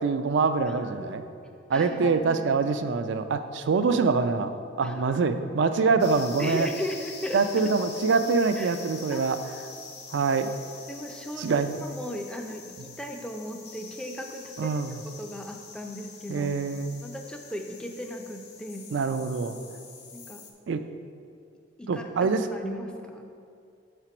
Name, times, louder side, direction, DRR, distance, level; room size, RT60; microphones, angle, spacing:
voice 1, 0.0-1.2 1.7-4.5 4.8-6.7 7.3-9.4 10.1-10.5 11.4-11.7 14.6-15.0 16.3-17.0 18.9-19.6 20.7-20.8 21.9-22.5, right 4 dB, 65° right, 10 dB, 0.3 m, -25 dB
voice 2, 0.7-2.4 4.8-5.2 6.4-7.4 8.6-8.7 9.1-9.2 10.9-14.8 15.0-16.5 17.0-18.9 20.1-20.4 21.8-23.2, left 1 dB, 5° left, 3 dB, 0.4 m, -37 dB
sound 1, 6.0-20.5, left 5 dB, 55° left, 0.7 m, -45 dB
5.8 x 4.4 x 5.9 m, 2.4 s
head